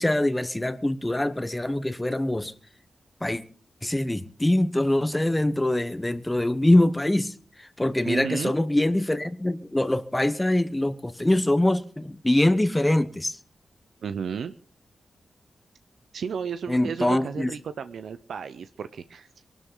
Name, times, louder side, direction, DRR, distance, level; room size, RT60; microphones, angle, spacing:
voice 1, 0.0-2.5 3.2-3.4 3.8-7.3 7.6-13.4 16.7-17.5, left 1 dB, 10° left, 1.1 m, -23 dB
voice 2, 8.0-8.5 14.0-14.5 16.1-19.3, right 6 dB, 85° right, 0.7 m, -32 dB
22.5 x 12.5 x 3.9 m
wide cardioid pair, 135°, 0 cm